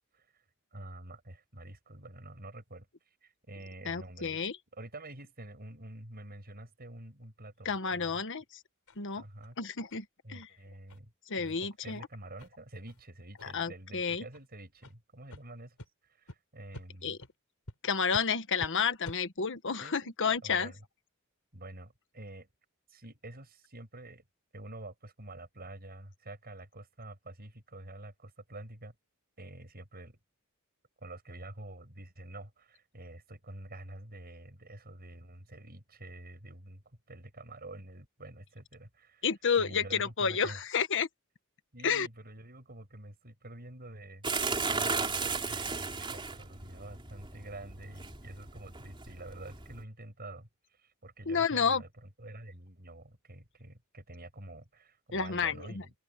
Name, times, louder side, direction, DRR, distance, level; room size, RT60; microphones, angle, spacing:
voice 1, 0.1-0.4 0.7-2.9 3.2-4.4 4.7-8.2 9.1-9.6 10.2-11.1 11.4-15.8 16.0-17.2 19.8-20.1 20.4-20.8 21.5-22.5 22.9-24.2 24.5-29.0 29.4-30.2 31.0-39.3 39.6-40.6 41.7-50.5 50.8-55.9, right 1 dB, 45° right, 7.3 m, -48 dB
voice 2, 3.9-4.6 7.6-8.4 9.0-9.2 9.6-10.5 11.3-12.0 13.5-14.2 17.0-17.2 17.8-20.7 39.2-41.1 41.8-42.1 51.3-51.8 55.1-55.8, left 6 dB, 60° left, 1.4 m, -30 dB
sound 1, 8.9-9.0 9.4-9.5 9.9-10.0 10.4-10.5 10.9-11.0 11.4-11.5 11.9-12.0 12.4-12.5 12.9-13.0 13.4-13.7 14.3-14.4 14.8-14.9 15.3-15.4 15.8-15.9 16.3-16.4 16.7-16.9 17.2-17.3 17.7-17.8 18.1-18.3 18.6-18.7 19.0-19.2, left 1 dB, 85° left, 4.1 m, -47 dB
sound 2, 44.2-49.8, right 4 dB, 25° right, 3.8 m, -35 dB
head